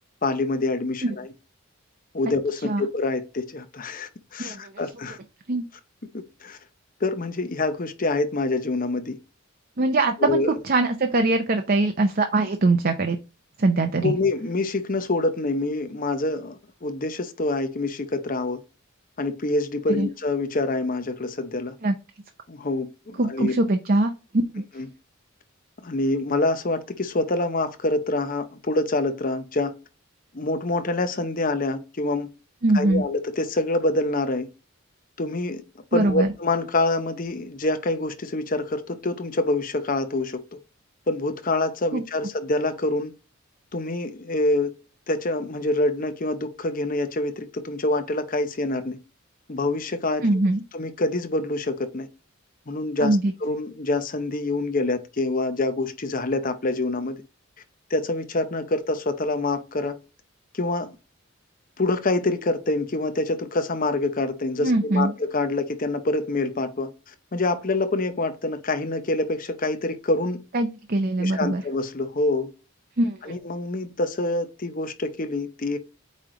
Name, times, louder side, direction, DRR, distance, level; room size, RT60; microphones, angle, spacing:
voice 1, 0.2-1.3 2.1-5.2 6.4-6.6 7.0-9.2 10.2-10.6 14.0-18.6 19.2-21.8 22.5-23.5 24.8-24.9 25.8-29.7 30.3-32.3 32.7-34.5 35.2-35.6 35.9-40.4 41.1-43.1 43.7-44.7 45.1-49.0 49.5-50.3 50.7-52.1 52.7-57.2 57.9-60.0 60.5-61.0 61.8-70.4 71.2-72.5 73.2-75.8, left 2 dB, 40° left, 0.8 m, -26 dB
voice 2, 4.4-4.7 5.5-5.6 9.8-13.2 13.6-14.2 19.9-20.1 21.8-21.9 23.2-24.1 24.5-24.6 32.6-33.1 35.9-36.3 41.9-42.0 50.2-50.6 53.0-53.3 64.6-65.1 70.5-71.6 73.0-73.4, right 2 dB, 45° right, 0.6 m, -22 dB
8.3 x 3.3 x 3.8 m
head